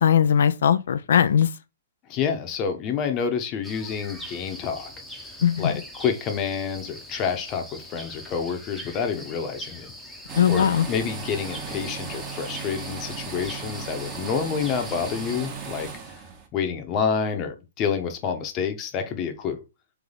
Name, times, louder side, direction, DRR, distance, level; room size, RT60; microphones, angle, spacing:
voice 1, 0.0-1.5 5.4-5.7 10.3-10.9, left 8 dB, 70° left, 0.4 m, -19 dB
voice 2, 2.1-4.9 5.6-9.9 10.5-15.9 16.5-19.6, left 6 dB, 30° left, 0.9 m, -28 dB
sound 1, 3.6-15.5, equal, ahead, 0.8 m, -42 dB
sound 2, 10.3-16.5, right 5 dB, 25° right, 1.0 m, -36 dB
3.4 x 3.4 x 3.8 m
hypercardioid pair, 145°, 0 cm